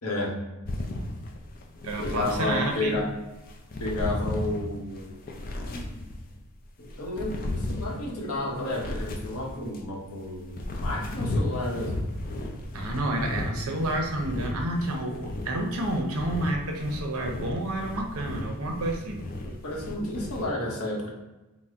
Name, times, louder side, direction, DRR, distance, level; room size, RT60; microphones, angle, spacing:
voice 1, 0.0-0.4 2.0-3.1 3.8-5.2 5.7-6.0 6.8-12.0 19.4-21.1, left 2 dB, 75° left, -1 dB, 0.9 m, -31 dB
sound 1, 0.7-3.0 3.4-6.4 6.8-9.9 10.3-20.4, left 1 dB, 40° left, 0.4 m, -34 dB
voice 2, 1.8-3.0 12.7-19.2, right 1 dB, 75° right, 2 dB, 0.7 m, -29 dB
4.0 x 2.1 x 3.5 m, 1.0 s
head